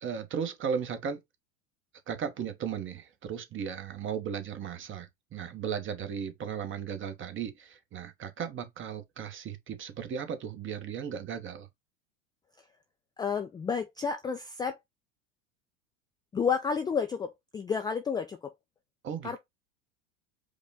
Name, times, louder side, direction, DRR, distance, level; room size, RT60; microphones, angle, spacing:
voice 1, 0.0-1.2 2.1-11.7 19.0-19.4, right 7 dB, 30° right, 1.0 m, -36 dB
voice 2, 13.2-14.8 16.3-18.5 19.2-19.4, left 6 dB, 10° left, 0.3 m, -31 dB
5.1 x 2.2 x 3.5 m
hypercardioid pair, 95°, 39 cm